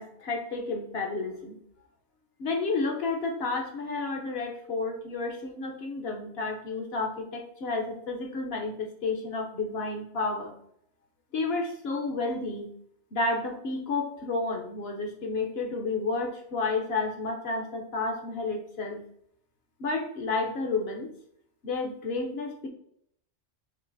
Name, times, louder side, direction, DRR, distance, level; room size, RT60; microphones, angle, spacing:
voice 1, 0.0-1.6 2.4-10.6 11.3-12.7 13.1-19.0 19.8-21.1 21.6-22.7, left 3 dB, 65° left, 2 dB, 0.9 m, -31 dB
5.9 x 2.5 x 2.6 m, 0.68 s
omnidirectional pair, 1.2 m